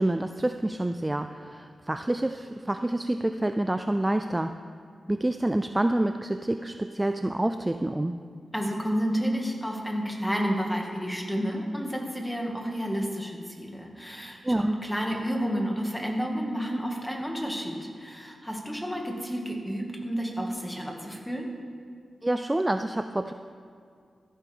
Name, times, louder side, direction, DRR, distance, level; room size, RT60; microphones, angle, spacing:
voice 1, 0.0-4.5 5.1-8.2 14.4-14.7 22.2-23.3, right 1 dB, 15° right, 8 dB, 0.4 m, -27 dB
voice 2, 8.5-21.5, equal, 5° left, 0 dB, 2.0 m, -30 dB
14.5 x 13.0 x 3.6 m, 2.2 s
cardioid pair, 80°, 0 cm